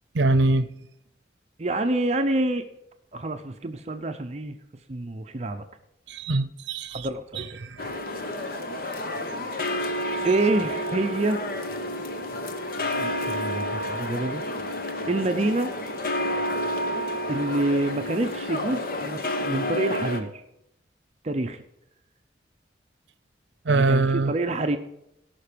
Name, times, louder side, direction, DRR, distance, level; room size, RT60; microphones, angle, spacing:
voice 1, 0.1-0.7 6.1-7.1 7.4-7.8 23.6-24.3, right 2 dB, 75° right, 15 dB, 0.7 m, -23 dB
voice 2, 1.6-2.6 3.1-4.6 4.9-5.6 6.9-7.6 10.2-11.4 13.0-14.4 15.1-15.7 17.3-20.4 21.2-21.6 23.7-24.8, right 2 dB, 35° right, 6 dB, 0.6 m, -27 dB
sound 1, 7.8-20.2, left 1 dB, 55° left, 1.0 m, -30 dB
17.5 x 5.9 x 5.1 m, 0.82 s
head